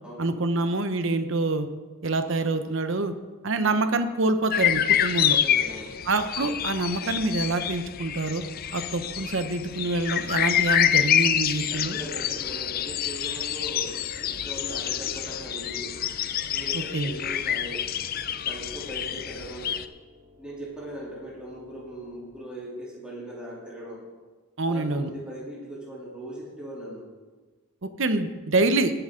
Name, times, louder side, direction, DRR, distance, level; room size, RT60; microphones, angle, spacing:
voice 1, 0.2-1.7 2.0-3.1 3.4-5.4 6.1-8.4 8.7-12.0 16.7-17.1 24.6-25.1 27.8-28.9, right 2 dB, 55° right, 9 dB, 0.8 m, -26 dB
sound 1, 4.5-19.9, left 10 dB, 40° left, 0.4 m, -27 dB
voice 2, 5.4-6.0 11.7-16.0 16.5-17.9 18.4-19.8 20.4-24.1 24.6-27.0, right 1 dB, 5° right, -6 dB, 3.1 m, -39 dB
sound 2, 14.2-22.2, left 2 dB, 85° right, 2.6 m, -55 dB
19.0 x 7.9 x 3.8 m, 1.3 s
head